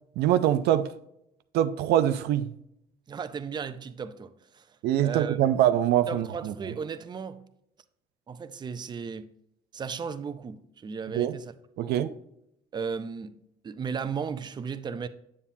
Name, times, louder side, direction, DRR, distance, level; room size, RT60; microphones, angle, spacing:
voice 1, 0.2-0.9 1.5-2.5 4.8-6.7 11.1-11.4 11.8-12.1, right 11 dB, 75° right, 0.5 m, -24 dB
voice 2, 3.1-5.4 6.1-7.4 8.3-9.3 9.7-11.5 11.8-12.1 12.7-13.3 13.6-15.1, right 6 dB, 25° right, 0.5 m, -35 dB
8.4 x 7.2 x 2.7 m
cardioid pair, 110°, 17 cm